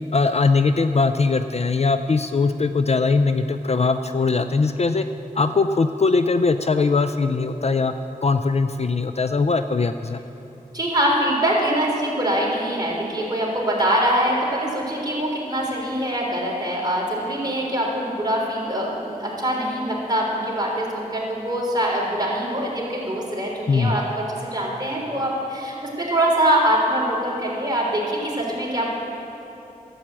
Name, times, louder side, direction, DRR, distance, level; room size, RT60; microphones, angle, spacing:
voice 1, 0.1-5.1 5.4-7.9 8.2-10.2 23.7-24.0, left 4 dB, 45° left, 9 dB, 0.4 m, -20 dB
voice 2, 10.7-28.9, right 1 dB, 25° right, -3 dB, 3.5 m, -23 dB
12.0 x 8.5 x 7.6 m, 2.9 s
cardioid pair, 50°, 15 cm